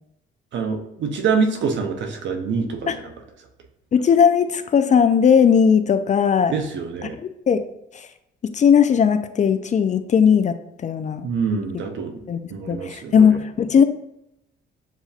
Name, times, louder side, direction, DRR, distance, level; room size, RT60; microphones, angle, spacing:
voice 1, 0.5-3.0 6.5-7.2 11.2-13.4, right 5 dB, 70° right, 5 dB, 0.8 m, -25 dB
voice 2, 3.9-6.5 7.5-7.6 7.9-8.1 8.4-11.3 12.3-12.4 12.7-13.8, left 7 dB, 40° left, 9 dB, 0.4 m, -17 dB
7.3 x 2.7 x 2.4 m, 0.82 s
cardioid pair, 90°, 20 cm